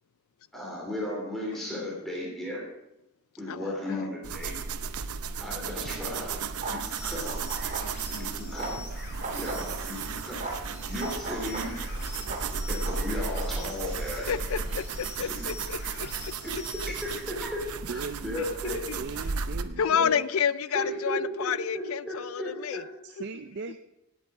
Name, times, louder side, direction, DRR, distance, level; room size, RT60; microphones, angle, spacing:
voice 1, 0.5-2.6 3.4-4.5 5.4-7.3 8.1-8.8 9.3-10.4 10.8-11.7 12.7-14.3 15.3-15.4 17.0-18.8 19.5-19.6 19.9-20.1 20.7-22.8, left 1 dB, ahead, -4 dB, 3.2 m, -35 dB
voice 2, 3.5-4.1 14.3-16.6 18.4-19.0 19.8-22.8 23.2-23.3, left 7 dB, 70° left, 17 dB, 0.4 m, -30 dB
sound 1, 4.2-19.6, right 6 dB, 85° right, 0.7 m, -35 dB
sound 2, 6.0-14.8, right 2 dB, 35° right, 2.6 m, -37 dB
sound 3, 6.8-17.2, left 4 dB, 50° left, 2.6 m, -46 dB
voice 3, 17.8-18.6 19.0-20.1 23.0-23.8, right 4 dB, 50° right, 7 dB, 0.5 m, -39 dB
17.0 x 8.3 x 4.8 m, 0.89 s
head